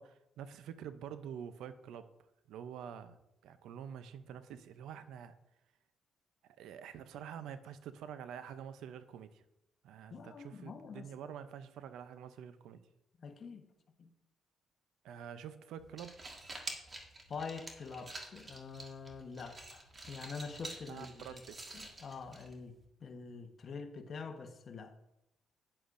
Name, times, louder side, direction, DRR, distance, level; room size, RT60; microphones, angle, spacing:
voice 1, 0.0-2.1 2.5-5.4 6.6-9.4 9.8-12.8 15.0-16.3 20.9-21.6, right 8 dB, 85° right, 0.6 m, -47 dB
voice 2, 10.1-11.3 13.2-13.6 14.0-14.1 17.3-21.4 21.7-22.7 23.0-24.9, left 5 dB, 50° left, 1.1 m, -45 dB
sound 1, 15.8-22.8, right 2 dB, 30° right, 1.7 m, -49 dB
10.0 x 9.7 x 2.6 m
cardioid pair, 90°, 0 cm